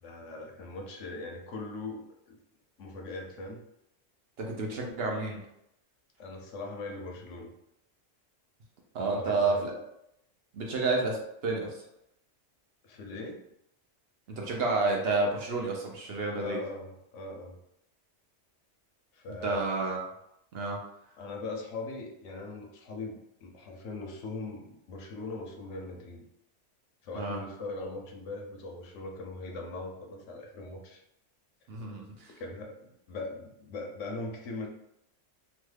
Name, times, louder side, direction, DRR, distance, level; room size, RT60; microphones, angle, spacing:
voice 1, 0.0-2.4 2.8-3.6 6.2-7.5 9.0-9.7 12.8-13.4 16.4-17.6 19.1-19.7 21.2-26.2 27.0-31.0 32.4-32.7 33.1-34.7, left 3 dB, 85° left, 2 dB, 1.0 m, -40 dB
voice 2, 4.4-5.4 8.9-9.7 10.5-11.7 14.3-16.6 19.3-20.0 20.5-20.8 27.1-27.4 31.7-32.3, right 3 dB, 60° right, 0 dB, 0.8 m, -30 dB
3.0 x 2.3 x 3.2 m, 0.79 s
omnidirectional pair, 1.3 m